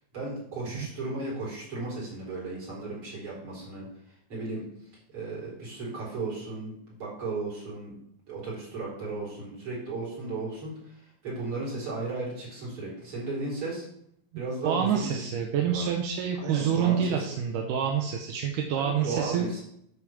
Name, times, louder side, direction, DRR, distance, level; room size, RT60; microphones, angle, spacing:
voice 1, 0.1-4.6 5.1-7.9 8.3-13.9 14.4-15.2 15.5-15.9 16.4-17.4 18.8-19.6, right 3 dB, 40° right, -5 dB, 4.5 m, -35 dB
voice 2, 14.6-19.5, right 8 dB, 80° right, 2 dB, 2.2 m, -27 dB
8.7 x 4.8 x 7.2 m, 0.73 s
omnidirectional pair, 3.9 m